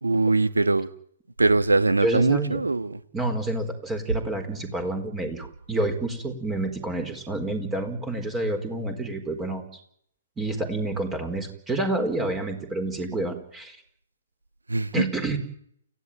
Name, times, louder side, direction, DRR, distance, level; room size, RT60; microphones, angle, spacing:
voice 1, 0.0-0.9 1.4-3.0 14.7-15.0, right 3 dB, 80° right, 1.4 m, -22 dB
voice 2, 2.0-2.6 3.1-9.6 10.4-13.8 14.9-15.4, right 2 dB, 10° right, 4.4 m, -28 dB
29.5 x 15.0 x 9.2 m
figure-of-eight pair, 125°, 0 cm